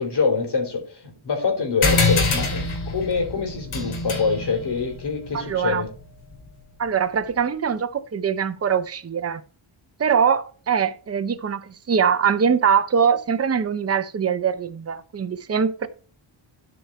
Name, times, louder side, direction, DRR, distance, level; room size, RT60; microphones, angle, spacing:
voice 1, 0.0-5.9, left 5 dB, 55° left, 3.4 m, -25 dB
sound 1, 1.8-6.7, left 3 dB, 85° left, 3.2 m, -26 dB
voice 2, 5.3-5.8 6.8-9.4 10.0-15.9, right 7 dB, 30° right, 0.8 m, -22 dB
12.5 x 5.0 x 4.3 m
wide cardioid pair, 155°, 49 cm